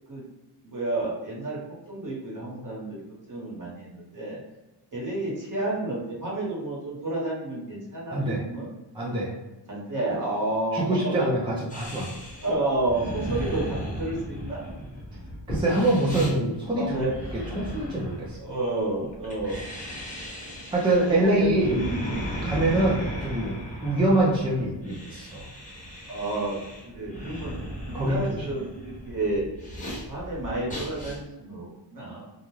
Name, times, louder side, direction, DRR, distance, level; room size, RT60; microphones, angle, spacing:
voice 1, 0.6-1.6 1.9-3.0 3.3-4.4 4.9-8.7 9.7-11.1 12.4-14.6 16.8-17.1 18.4-19.6 21.1-22.2 22.6-22.9 26.1-26.6 26.9-27.5 27.9-29.4 30.1-32.3, right 2 dB, 45° right, -5 dB, 1.2 m, -30 dB
voice 2, 8.1-8.4 8.9-9.3 10.7-12.1 15.5-17.1 17.5-18.4 20.7-21.8 22.4-25.4 27.9-28.5, right 1 dB, 10° right, -5 dB, 0.5 m, -25 dB
sound 1, 11.7-31.2, equal, 15° left, 1.1 m, -36 dB
2.4 x 2.2 x 3.0 m, 1.0 s
wide cardioid pair, 105°, 45 cm